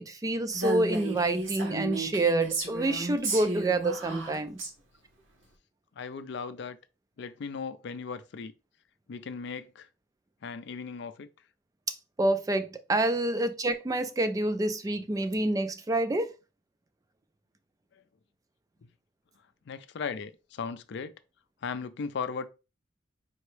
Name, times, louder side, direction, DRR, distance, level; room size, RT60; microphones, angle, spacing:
voice 1, 0.0-4.6 11.9-16.3, right 2 dB, 20° right, 0.3 m, -28 dB
Female speech woman speaking, 0.5-4.7, right 2 dB, 85° right, 1.1 m, -33 dB
voice 2, 6.0-6.8 7.2-8.5 9.1-9.9 10.4-11.3 17.9-18.0 19.7-21.1 21.6-22.5, left 5 dB, 60° left, 0.4 m, -37 dB
4.4 x 3.0 x 3.2 m
head